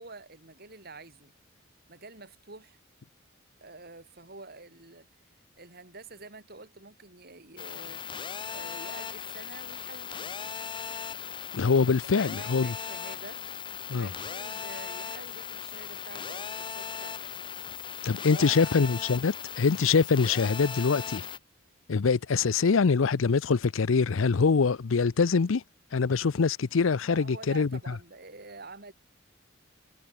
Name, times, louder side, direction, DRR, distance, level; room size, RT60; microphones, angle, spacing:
voice 1, 0.0-1.3 1.9-2.8 3.6-5.1 5.6-8.0 8.5-10.4 11.6-13.4 13.9-17.2 18.3-18.9 27.0-28.9, right 3 dB, 50° right, 6.3 m, -47 dB
sound 1, 7.6-21.4, left 7 dB, 25° left, 0.9 m, -38 dB
voice 2, 11.5-12.7 13.9-14.1 18.0-21.3 21.9-25.6 25.9-27.7, left 5 dB, 80° left, 0.6 m, -24 dB
head